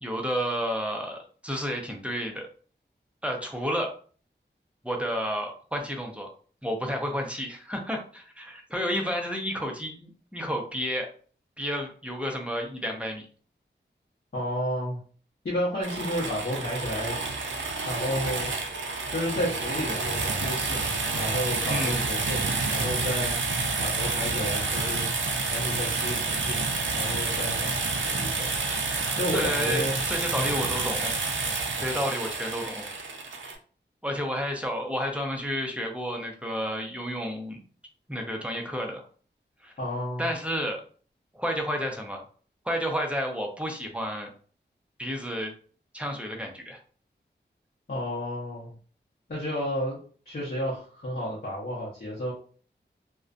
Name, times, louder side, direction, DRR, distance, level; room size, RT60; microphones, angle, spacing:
voice 1, 0.0-2.5 3.2-3.9 4.8-6.3 6.6-11.1 11.6-13.2 21.7-22.1 29.3-31.1 31.8-32.9 34.0-37.6 38.1-39.0 39.6-39.7 40.2-40.8 41.3-42.2 42.6-44.3 45.0-45.5 45.9-46.8, equal, 5° right, 2 dB, 0.5 m, -31 dB
voice 2, 14.3-15.0 15.4-17.2 17.8-18.5 19.1-25.1 25.5-26.6 26.9-28.5 29.1-30.0 30.3-30.6 32.0-32.1 39.8-40.3 47.9-48.8 49.3-50.0 50.2-52.3, equal, 50° left, -6 dB, 0.8 m, -32 dB
Engine Rev, 15.8-33.6, right 3 dB, 90° right, 0.5 m, -29 dB
2.4 x 2.1 x 2.4 m, 0.43 s
wide cardioid pair, 80°, 19 cm